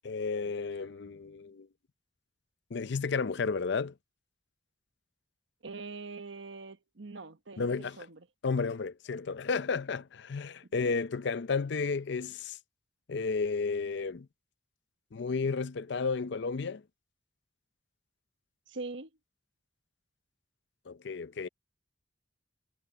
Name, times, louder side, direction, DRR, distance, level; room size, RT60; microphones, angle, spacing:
voice 1, 0.0-1.7 2.7-3.9 7.6-8.0 8.4-12.6 13.1-14.3 15.1-16.8 20.9-21.5, left 4 dB, 65° left, 0.6 m, -32 dB
voice 2, 5.6-8.2 18.7-19.1, right 3 dB, 85° right, 1.1 m, -43 dB
head